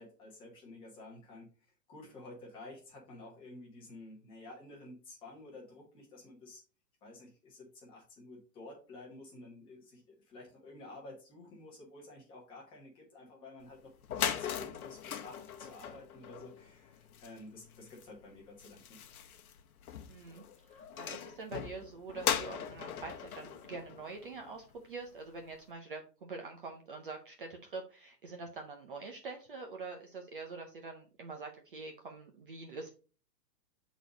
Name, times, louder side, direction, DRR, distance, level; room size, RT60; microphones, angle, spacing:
voice 1, 0.0-1.5 1.9-6.6 7.0-13.9 14.2-19.0, left 2 dB, 10° left, -2 dB, 1.1 m, -51 dB
sound 1, 13.7-13.8 14.0-24.8, left 9 dB, 60° left, 0.9 m, -40 dB
voice 2, 20.1-32.9, right 3 dB, 35° right, 3 dB, 0.6 m, -45 dB
6.5 x 4.1 x 3.9 m, 0.36 s
hypercardioid pair, 175°, 50 cm